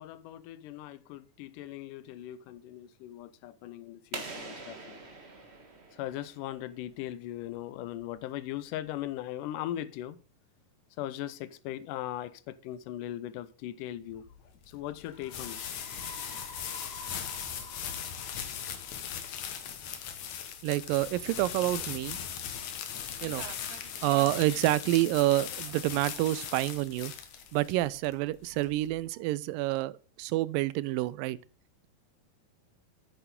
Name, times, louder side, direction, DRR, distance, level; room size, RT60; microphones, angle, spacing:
voice 1, 0.0-5.0 6.0-10.2 11.0-14.3 14.7-15.6, left 13 dB, 80° left, 2.2 m, -39 dB
sound 1, 4.1-6.8, right 3 dB, 60° right, 0.6 m, -43 dB
sound 2, 14.1-29.0, left 8 dB, 65° left, 2.2 m, -39 dB
sound 3, 15.0-19.6, left 1 dB, 25° left, 4.2 m, -50 dB
voice 2, 20.6-22.2 23.2-27.1 27.5-31.4, right 17 dB, 90° right, 2.3 m, -28 dB
9.1 x 8.4 x 3.7 m
omnidirectional pair, 3.9 m